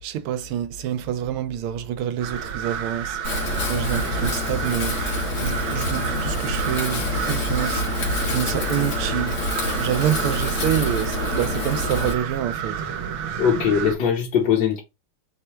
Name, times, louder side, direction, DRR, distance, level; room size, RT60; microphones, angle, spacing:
voice 1, 0.0-9.4 9.8-12.8, right 10 dB, 90° right, 1.5 m, -27 dB
sound 1, 2.2-14.0, right 8 dB, 70° right, 1.5 m, -30 dB
Wind, 3.2-12.1, left 2 dB, 85° left, 2.5 m, -27 dB
voice 2, 13.4-14.8, left 8 dB, 55° left, 1.4 m, -20 dB
4.9 x 2.2 x 4.2 m
omnidirectional pair, 2.4 m